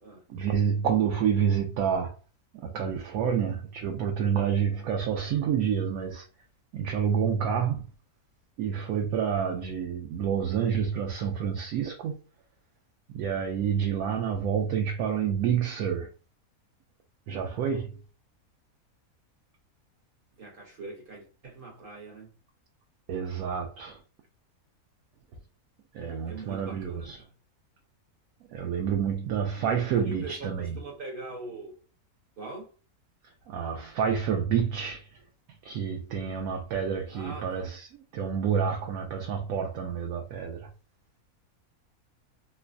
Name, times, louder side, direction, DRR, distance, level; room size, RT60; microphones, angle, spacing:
voice 1, 0.3-2.2 2.5-6.3 6.7-7.8 8.6-12.2 13.1-16.1 17.3-18.0 23.1-24.0 25.9-27.2 28.5-30.8 33.5-35.1 35.6-40.7, right 7 dB, 75° right, 1.0 m, -28 dB
voice 2, 9.3-9.6 20.4-22.3 26.3-27.3 29.9-31.8 32.4-32.7 37.1-37.7, right 3 dB, 50° right, 0.7 m, -42 dB
3.9 x 2.1 x 2.4 m
omnidirectional pair, 1.6 m